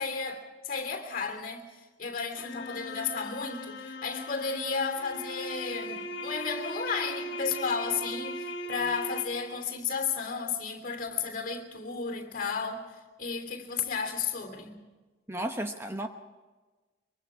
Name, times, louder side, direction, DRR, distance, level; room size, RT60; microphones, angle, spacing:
voice 1, 0.0-14.8, left 5 dB, 50° left, 3.0 m, -33 dB
sound 1, 2.4-9.6, left 1 dB, 75° left, 1.6 m, -38 dB
voice 2, 15.3-16.1, right 1 dB, 15° right, 0.9 m, -33 dB
23.5 x 23.5 x 4.8 m
head